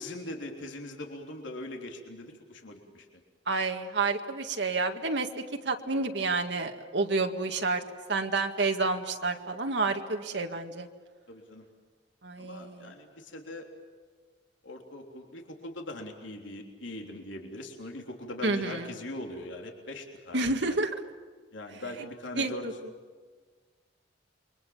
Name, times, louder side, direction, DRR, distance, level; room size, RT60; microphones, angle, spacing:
voice 1, 0.0-3.1 11.3-11.7 12.4-13.7 14.6-20.8 21.5-22.7, left 1 dB, 85° left, 2 dB, 3.5 m, -41 dB
voice 2, 3.5-5.3 5.7-7.8 8.1-10.9 12.2-12.9 18.4-18.9 20.3-20.9 22.4-22.7, right 3 dB, 65° right, 4 dB, 1.9 m, -29 dB
29.0 x 24.0 x 7.2 m, 1.5 s
head